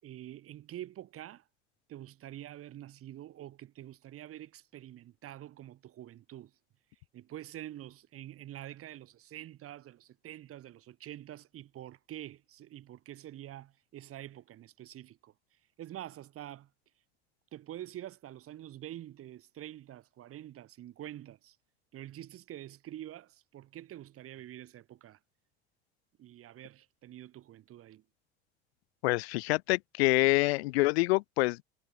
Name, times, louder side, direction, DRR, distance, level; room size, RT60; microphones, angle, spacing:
voice 1, 0.0-1.4 1.9-6.5 7.1-15.3 15.8-16.7 17.5-21.6 21.9-25.2 26.2-28.0, right 13 dB, 45° right, 1.4 m, -46 dB
voice 2, 29.0-31.6, left 22 dB, 70° left, 0.6 m, -26 dB
hypercardioid pair, 70°, 33 cm